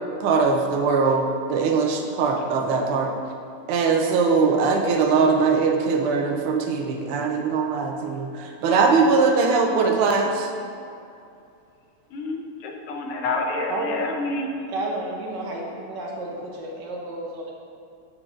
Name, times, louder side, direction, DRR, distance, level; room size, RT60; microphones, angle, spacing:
voice 1, 0.2-3.1 3.7-10.5, right 4 dB, 80° right, 2 dB, 1.6 m, -21 dB
voice 2, 12.1-14.5, left 3 dB, 90° left, 2 dB, 1.7 m, -28 dB
voice 3, 13.7-14.0 14.7-17.5, right 2 dB, 65° right, -1 dB, 1.2 m, -31 dB
7.7 x 6.4 x 2.4 m, 2.5 s
omnidirectional pair, 2.4 m